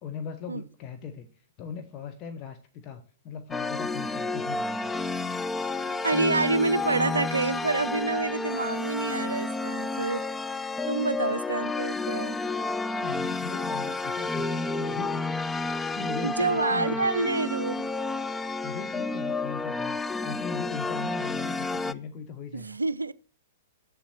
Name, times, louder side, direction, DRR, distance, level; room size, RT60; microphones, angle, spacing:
voice 1, 0.0-4.9 12.9-17.1 18.6-22.8, left 6 dB, 30° left, 1.0 m, -39 dB
sound 1, 3.5-21.9, left 3 dB, 10° left, 0.3 m, -31 dB
voice 2, 5.8-10.3 10.9-12.4 16.2-17.9 22.5-23.1, right 3 dB, 80° right, 0.4 m, -28 dB
7.4 x 7.1 x 4.5 m
figure-of-eight pair, 110°, 0 cm